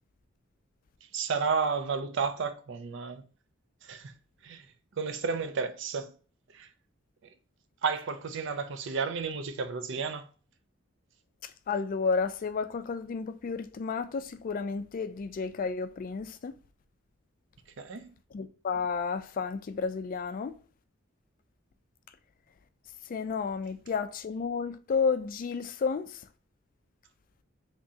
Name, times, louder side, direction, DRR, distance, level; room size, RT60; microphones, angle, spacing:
voice 1, 1.1-3.2 3.8-4.1 4.4-4.7 5.0-6.1 6.5-6.7 7.8-10.3 17.8-18.1, right 5 dB, 65° right, 0.5 m, -32 dB
voice 2, 11.4-16.5 18.3-20.6 23.1-26.3, left 5 dB, 45° left, 0.3 m, -32 dB
3.6 x 3.0 x 2.7 m
head